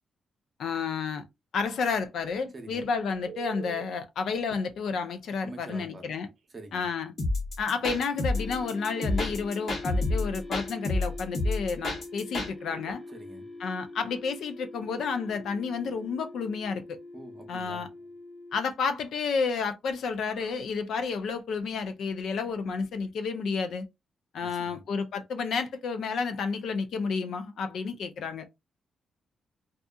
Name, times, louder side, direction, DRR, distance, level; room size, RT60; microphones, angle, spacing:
voice 1, 0.6-1.2 1.5-6.3 6.7-7.1 7.6-13.0 13.6-17.0 17.5-17.9 18.5-23.9 24.3-28.5, left 5 dB, 70° left, 0.4 m, -31 dB
voice 2, 2.5-2.9 5.4-6.1 6.5-6.9 13.1-13.5 17.1-17.9 24.4-24.8, right 2 dB, 25° right, 0.7 m, -45 dB
Telephone, 3.3-3.9 4.5-4.6 6.4-6.5 6.9-7.1 12.4-13.2 20.3-20.5, right 8 dB, 60° right, 0.5 m, -44 dB
sound 1, 7.2-12.5, left 2 dB, 45° left, 0.9 m, -29 dB
sound 2, 8.3-18.6, left 2 dB, 10° left, 0.8 m, -44 dB
2.7 x 2.4 x 2.3 m
cardioid pair, 140°, 0 cm